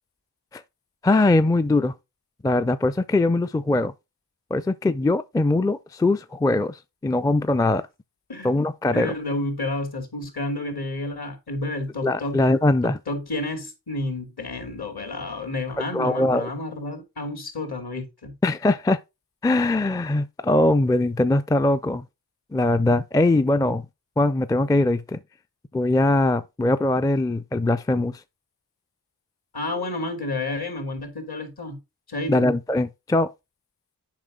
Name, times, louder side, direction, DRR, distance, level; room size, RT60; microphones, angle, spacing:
voice 1, 1.0-1.9 2.4-3.9 4.5-7.8 8.4-9.1 12.0-13.0 15.9-16.5 18.4-19.0 19.4-22.0 22.5-23.8 24.2-25.2 25.7-28.2 32.3-33.3, left 2 dB, 10° left, 0.4 m, -21 dB
voice 2, 8.9-12.4 12.8-18.3 29.5-31.8 32.1-32.5, left 2 dB, 60° left, 2.8 m, -30 dB
7.4 x 5.2 x 3.8 m
cardioid pair, 45°, 43 cm